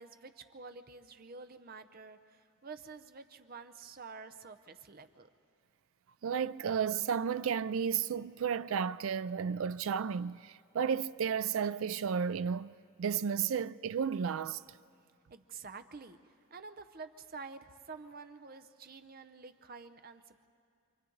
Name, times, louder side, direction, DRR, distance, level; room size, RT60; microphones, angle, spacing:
voice 1, 0.0-5.3 15.3-16.2 16.5-20.5, right 4 dB, 45° right, 0.7 m, -49 dB
voice 2, 6.2-14.6, right 7 dB, 75° right, 0.4 m, -33 dB
28.0 x 23.5 x 3.9 m
head